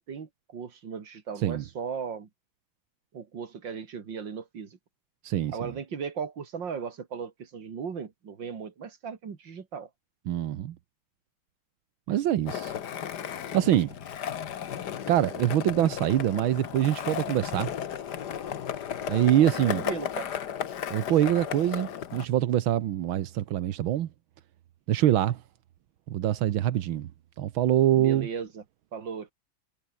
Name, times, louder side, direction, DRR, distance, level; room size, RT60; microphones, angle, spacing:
voice 1, 0.0-2.3 3.1-4.8 5.5-9.9 19.6-20.4 27.9-28.6 28.9-29.3, right 6 dB, 65° right, 3.0 m, -37 dB
voice 2, 5.2-5.7 10.3-10.8 12.1-12.7 13.3-13.9 15.1-17.7 19.1-19.8 20.9-24.1 24.9-25.4 26.1-27.1 27.4-28.3, right 12 dB, 85° right, 1.8 m, -25 dB
Skateboard, 12.5-22.3, left 9 dB, 60° left, 1.7 m, -34 dB
omnidirectional pair, 2.2 m